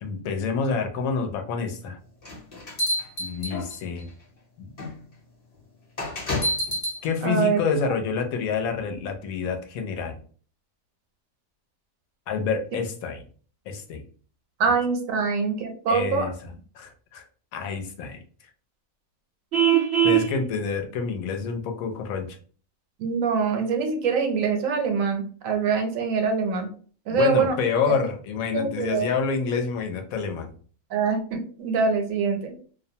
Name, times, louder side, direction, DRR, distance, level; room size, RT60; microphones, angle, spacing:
voice 1, 0.0-2.0 3.2-4.1 4.6-4.7 7.0-10.2 12.3-13.2 13.7-14.0 15.9-16.3 16.7-17.2 17.5-18.2 20.0-22.4 27.1-30.5, left 5 dB, 90° left, 4 dB, 1.0 m, -27 dB
sound 1, 2.2-4.0 4.8-4.9 6.0-7.0, left 1 dB, 35° left, 0.7 m, -28 dB
voice 2, 7.2-7.6 12.7-12.8 14.6-16.3 23.0-26.7 27.1-27.5 28.5-29.1 30.9-32.5, right 5 dB, 80° right, 4 dB, 1.0 m, -24 dB
Vehicle horn car horn honking, 19.5-20.3, right 10 dB, 60° right, 0.6 m, -19 dB
2.5 x 2.1 x 2.7 m, 0.43 s
omnidirectional pair, 1.4 m